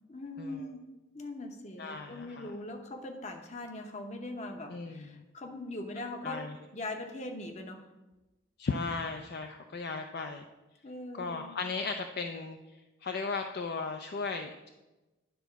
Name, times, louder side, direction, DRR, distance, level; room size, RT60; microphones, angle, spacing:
voice 1, 0.1-0.8 1.1-6.4 6.7-7.9 10.8-11.6, left 2 dB, 35° left, 5 dB, 0.8 m, -41 dB
voice 2, 1.8-2.5 4.7-5.2 6.2-6.6 8.6-10.5 11.2-12.6 13.0-14.7, left 4 dB, 50° left, 5 dB, 0.4 m, -36 dB
10.0 x 4.1 x 5.8 m, 1.1 s
head